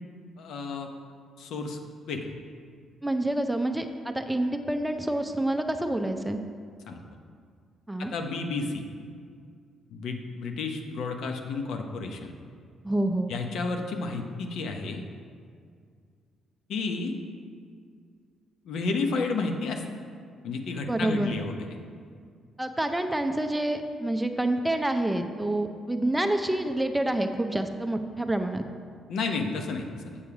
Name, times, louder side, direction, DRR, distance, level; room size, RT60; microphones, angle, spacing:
voice 1, 0.4-0.9 1.4-1.8 2.1-2.3 6.9-7.0 8.0-8.8 9.9-12.3 13.3-15.0 16.7-17.1 18.6-19.8 20.4-21.7 29.1-30.2, left 3 dB, 75° left, 4 dB, 0.8 m, -31 dB
voice 2, 3.0-6.4 7.9-8.1 12.8-13.3 20.9-21.3 22.6-28.6, right 1 dB, 5° right, 6 dB, 0.5 m, -27 dB
7.1 x 6.9 x 4.8 m, 2.1 s
cardioid pair, 90°, 0 cm